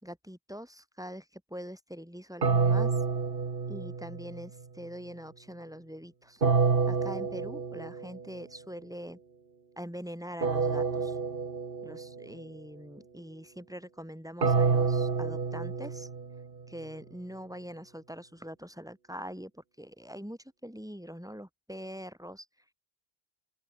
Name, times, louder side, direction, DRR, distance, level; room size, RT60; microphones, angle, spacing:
voice 1, 0.0-3.0 3.7-6.4 6.9-9.2 9.8-11.2 11.8-16.1 16.7-22.7, equal, 5° right, 2.6 m, -43 dB
sound 1, 2.4-4.5 6.4-8.2 10.4-12.2 14.4-16.6, right 5 dB, 60° right, 1.7 m, -28 dB
open air
omnidirectional pair, 1.0 m